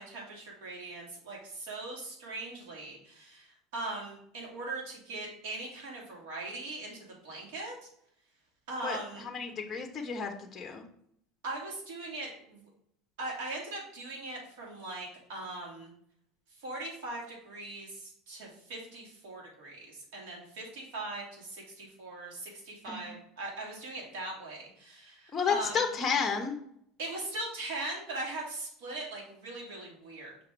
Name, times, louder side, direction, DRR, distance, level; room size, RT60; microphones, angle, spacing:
voice 1, 0.0-7.9 8.7-9.3 11.4-12.7 13.2-15.9 16.6-25.9 27.0-30.4, right 2 dB, 80° right, -2 dB, 2.6 m, -40 dB
voice 2, 8.8-10.8 22.9-23.0 25.3-26.6, left 6 dB, 20° left, 4 dB, 0.9 m, -31 dB
5.8 x 3.7 x 4.5 m, 0.69 s
supercardioid pair, 130°, 0 cm